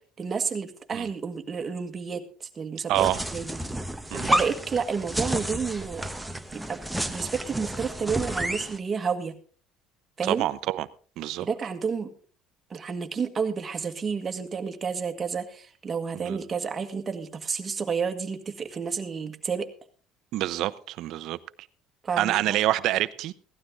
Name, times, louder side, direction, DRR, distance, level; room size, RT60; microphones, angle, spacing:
voice 1, 0.2-2.2 2.6-3.6 4.3-6.0 6.5-6.8 7.1-9.3 10.2-10.5 11.4-12.1 12.7-19.7 22.0-22.6, right 6 dB, 25° right, 1.7 m, -30 dB
sound 1, 2.9-8.8, right 1 dB, 5° right, 0.9 m, -30 dB
voice 2, 2.9-3.2 4.1-4.3 10.2-10.9 11.2-11.5 16.1-16.4 20.3-21.4 22.2-23.3, right 14 dB, 65° right, 0.8 m, -26 dB
17.0 x 12.5 x 3.7 m
cardioid pair, 130°, 0 cm